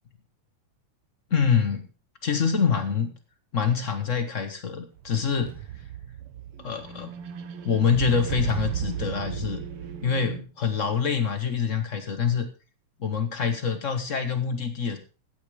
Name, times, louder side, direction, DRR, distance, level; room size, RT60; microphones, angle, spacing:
voice 1, 1.3-1.9 2.2-3.1 3.5-5.6 6.6-7.1 7.6-9.6 10.0-12.5 13.0-15.0, left 6 dB, 70° left, 7 dB, 0.7 m, -25 dB
sound 1, 5.0-10.4, right 9 dB, 60° right, 1.8 m, -35 dB
15.5 x 8.1 x 5.0 m, 0.33 s
omnidirectional pair, 3.3 m